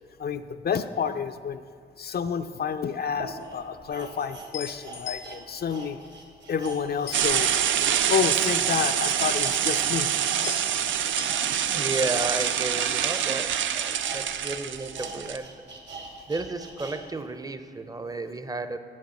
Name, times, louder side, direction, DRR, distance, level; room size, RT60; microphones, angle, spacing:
voice 1, 0.2-1.6 2.0-6.0 6.5-7.5 8.1-10.1 10.4-10.6, left 7 dB, 55° left, 9 dB, 0.4 m, -29 dB
sound 1, 2.3-2.4 3.0-10.4 10.7-17.0 17.4-17.5, right 3 dB, 70° right, 1.7 m, -43 dB
sound 2, 3.4-15.6 15.8-16.9, left 8 dB, 85° left, 1.0 m, -45 dB
sound 3, 7.1-15.4, right 9 dB, 85° right, 0.4 m, -26 dB
voice 2, 11.7-15.5 16.3-18.8, right 3 dB, 20° right, 9 dB, 0.6 m, -33 dB
7.7 x 6.5 x 7.0 m, 2.3 s
cardioid pair, 75°, 19 cm